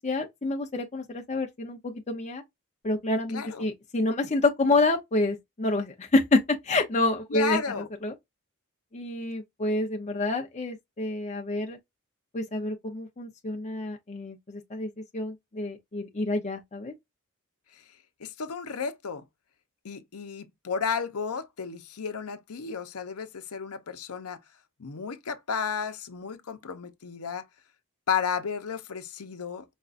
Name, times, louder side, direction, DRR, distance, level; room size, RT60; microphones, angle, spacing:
voice 1, 0.0-2.4 2.8-7.6 8.0-8.1 8.9-11.8 12.3-16.9, left 2 dB, 30° left, 0.7 m, -28 dB
voice 2, 3.3-3.7 7.3-7.9 17.7-17.8 18.2-19.2 19.8-24.4 24.8-27.4 28.1-29.6, left 6 dB, 75° left, 0.7 m, -33 dB
5.3 x 2.3 x 2.5 m
head